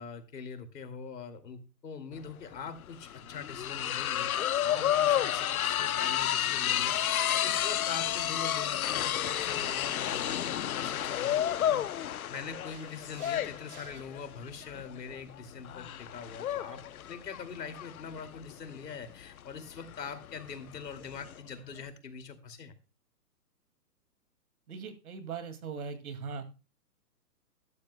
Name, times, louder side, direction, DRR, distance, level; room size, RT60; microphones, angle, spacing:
voice 1, 0.0-11.9 12.3-16.8 17.1-22.7, left 5 dB, 85° left, 7 dB, 2.6 m, -43 dB
sound 1, 2.2-2.3 2.5-21.4, left 11 dB, 60° left, 0.8 m, -31 dB
sound 2, 6.6-14.0, right 8 dB, 25° right, 1.3 m, -59 dB
voice 2, 24.7-26.4, right 5 dB, 60° right, 9 dB, 2.5 m, -39 dB
14.5 x 12.0 x 2.2 m, 0.32 s
hypercardioid pair, 160°, 48 cm